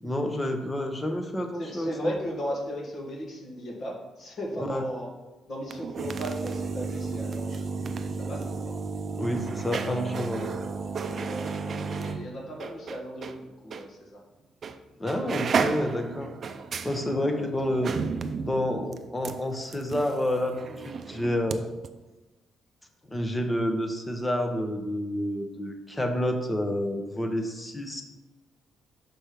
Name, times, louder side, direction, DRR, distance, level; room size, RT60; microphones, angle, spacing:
voice 1, 0.0-2.1 4.6-4.8 9.1-10.5 15.0-16.3 16.8-17.9 18.4-21.6 23.1-28.0, left 1 dB, 15° left, 5 dB, 0.9 m, -29 dB
voice 2, 1.6-5.1 5.5-7.7 8.1-8.4 11.0-14.2 17.1-17.5, equal, 55° left, -1 dB, 1.7 m, -36 dB
sound 1, 5.6-13.4 13.7-13.8 14.6-14.8 15.1-21.6 21.8-21.9, right 5 dB, 50° right, 0.5 m, -33 dB
6.1 x 4.4 x 5.1 m, 1.1 s
cardioid pair, 90°, 0 cm